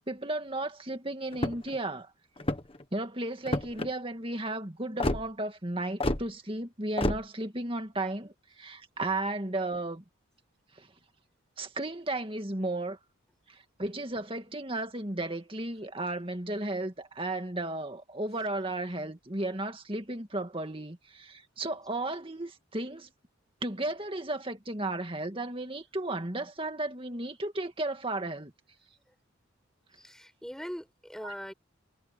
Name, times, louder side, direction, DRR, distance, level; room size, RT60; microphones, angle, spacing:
voice 1, 0.0-2.1 2.9-10.0 10.8-10.9 11.6-13.0 13.5-23.1 23.6-28.5 31.2-31.3, right 2 dB, 25° right, 2.1 m, -34 dB
sound 1, 1.3-1.8 2.4-2.8 3.5-3.9 5.0-5.2 6.0-6.2 7.0-7.2, left 1 dB, 25° left, 1.5 m, -29 dB
voice 2, 29.9-31.5, equal, ahead, 5.7 m, -41 dB
head